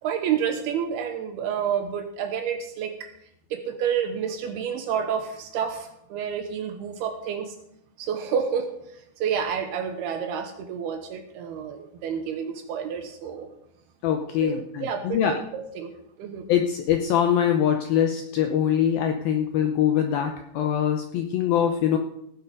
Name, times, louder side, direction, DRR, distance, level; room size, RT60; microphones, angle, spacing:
voice 1, 0.0-3.1 3.5-7.5 8.0-13.5 14.4-15.9 16.2-16.5, right 7 dB, 75° right, 6 dB, 2.6 m, -29 dB
voice 2, 14.0-15.4 16.5-22.0, left 9 dB, 85° left, 5 dB, 2.1 m, -23 dB
18.0 x 7.0 x 5.3 m, 0.80 s
omnidirectional pair, 5.2 m